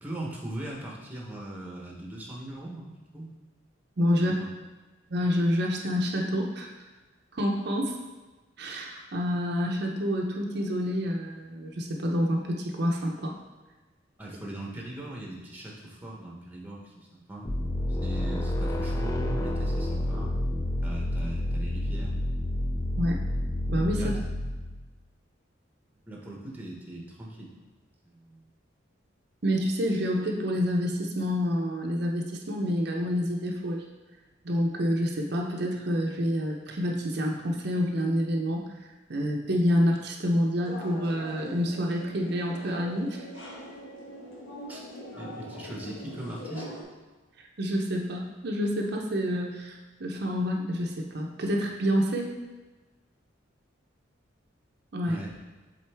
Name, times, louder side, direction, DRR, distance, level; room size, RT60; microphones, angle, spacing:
voice 1, 0.0-3.3 4.1-4.5 14.2-20.4 20.8-22.2 23.9-24.1 26.1-27.5 28.1-28.4 44.7-44.8 45.1-46.7 55.1-55.3, right 1 dB, 10° right, -2 dB, 0.9 m, -40 dB
voice 2, 4.0-4.3 5.1-6.7 7.3-8.0 8.6-13.4 23.0-23.2 23.7-24.1 29.4-33.8 34.4-38.7 39.1-43.3 47.6-52.3 54.9-55.2, equal, 55° right, 0 dB, 0.7 m, -28 dB
sound 1, 17.4-24.9, left 1 dB, 20° left, 0.4 m, -29 dB
sound 2, 40.6-46.8, left 1 dB, 90° left, 1.4 m, -42 dB
7.5 x 3.9 x 3.4 m, 1.2 s
head